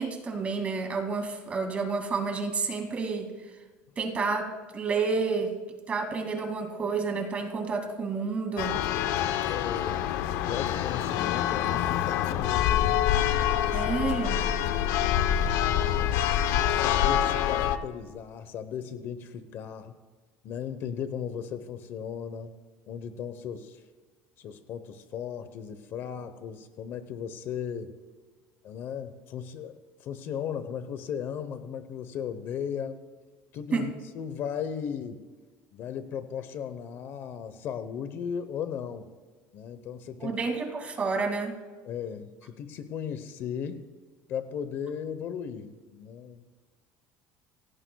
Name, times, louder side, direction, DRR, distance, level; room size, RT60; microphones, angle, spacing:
voice 1, 0.0-3.3 4.0-5.6 5.9-8.8 13.7-14.4 33.7-33.9 40.2-41.5, right 4 dB, 25° right, 3 dB, 2.4 m, -30 dB
Church bell, 8.6-17.8, left 10 dB, 65° left, 0.9 m, -26 dB
voice 2, 9.4-10.1 10.4-13.0 13.6-13.9 16.7-19.9 20.4-22.5 22.9-23.8 24.4-27.9 28.6-33.0 33.5-35.2 35.7-39.1 39.5-40.4 41.8-43.8 44.3-46.4, left 8 dB, 45° left, 11 dB, 1.0 m, -36 dB
26.5 x 17.5 x 2.3 m, 1.4 s
cardioid pair, 165°, 5 cm